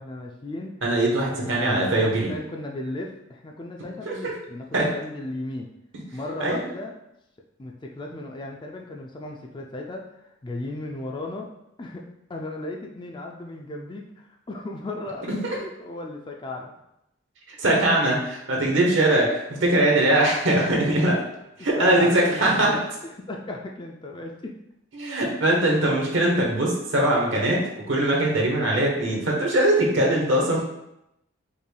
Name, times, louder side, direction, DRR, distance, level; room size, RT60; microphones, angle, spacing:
voice 1, 0.0-0.8 1.3-5.7 6.1-6.9 7.6-11.5 11.8-16.7 21.8-22.8 23.2-24.5, left 2 dB, 25° left, 1 dB, 0.4 m, -35 dB
voice 2, 0.8-2.3 4.0-4.3 4.7-4.9 6.4-6.6 15.4-15.6 17.5-21.2 21.6-22.8 24.9-30.6, right 1 dB, 70° right, -2 dB, 1.1 m, -21 dB
5.2 x 3.3 x 2.2 m, 0.83 s
head